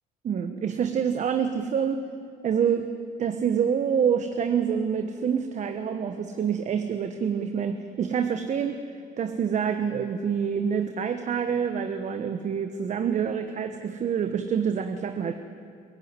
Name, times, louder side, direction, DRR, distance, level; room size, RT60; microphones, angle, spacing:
voice 1, 0.2-2.0 2.4-2.9 3.2-8.8 9.2-15.3, right 7 dB, 45° right, 7 dB, 1.1 m, -27 dB
22.0 x 16.0 x 9.6 m, 2.3 s
cardioid pair, 110°, 17 cm